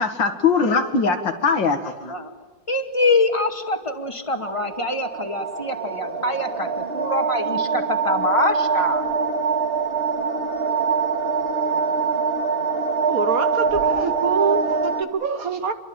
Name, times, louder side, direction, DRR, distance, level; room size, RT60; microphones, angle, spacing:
voice 1, 0.0-2.1, left 5 dB, 80° left, 7 dB, 2.6 m, -21 dB
voice 2, 2.7-9.0, left 2 dB, 15° left, 5 dB, 2.2 m, -24 dB
sound 1, 4.4-15.0, right 5 dB, 30° right, 2.0 m, -24 dB
voice 3, 13.1-15.7, right 5 dB, 55° right, 10 dB, 1.4 m, -25 dB
27.0 x 23.0 x 8.9 m, 1.2 s
omnidirectional pair, 2.0 m